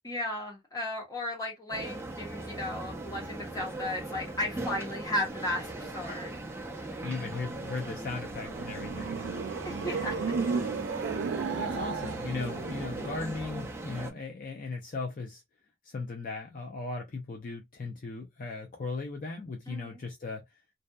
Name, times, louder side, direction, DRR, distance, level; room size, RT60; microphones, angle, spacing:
voice 1, 0.0-6.4 9.6-10.1 19.7-20.0, left 1 dB, 20° left, 1.0 m, -35 dB
sound 1, 1.7-14.1, right 2 dB, 15° right, 0.4 m, -39 dB
voice 2, 7.0-9.1 11.5-15.4 15.8-20.4, left 3 dB, 45° left, 0.4 m, -37 dB
sound 2, 8.2-13.5, right 5 dB, 80° right, 0.3 m, -34 dB
2.6 x 2.1 x 2.2 m
head